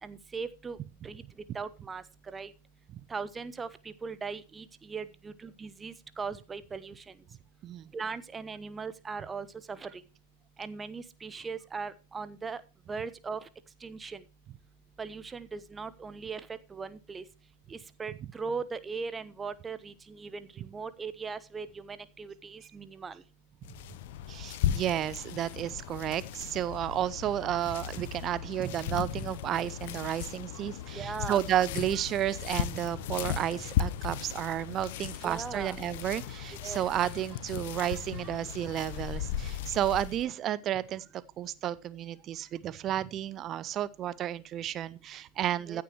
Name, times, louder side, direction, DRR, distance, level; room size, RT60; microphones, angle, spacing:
voice 1, 0.0-0.8 1.0-1.2 1.5-2.5 3.1-7.1 7.9-10.0 10.6-12.6 12.9-13.5 13.8-14.2 15.0-17.2 17.7-23.2 30.9-31.4 35.2-35.8 36.6-36.9 45.7-45.8, right 5 dB, 15° right, 1.0 m, -39 dB
sound 1, 23.6-40.3, left 11 dB, 50° left, 1.0 m, -36 dB
voice 2, 24.3-45.8, right 11 dB, 30° right, 0.6 m, -32 dB
15.5 x 10.5 x 3.0 m
figure-of-eight pair, 90°, 0 cm